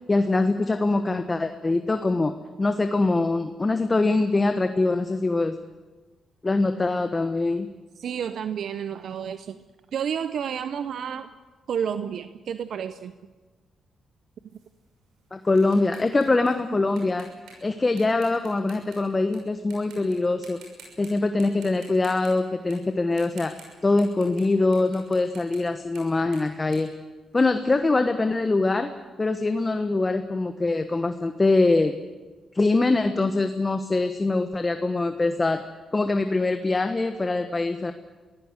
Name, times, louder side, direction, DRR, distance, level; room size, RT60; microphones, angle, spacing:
voice 1, 0.1-5.6 6.4-7.7 15.3-17.3 17.6-20.6 21.0-23.5 23.8-26.9 27.3-28.9 29.2-32.0 32.5-35.6 35.9-37.9, left 3 dB, 25° left, 8 dB, 1.2 m, -23 dB
voice 2, 8.0-9.6 9.9-11.3 11.7-13.1, right 8 dB, 70° right, 11 dB, 0.7 m, -30 dB
sound 1, 14.5-19.4 19.7-20.2 20.4-21.1 21.4-27.7, right 5 dB, 85° right, 6.3 m, -51 dB
23.5 x 16.0 x 8.2 m, 1.3 s
cardioid pair, 75°, 0 cm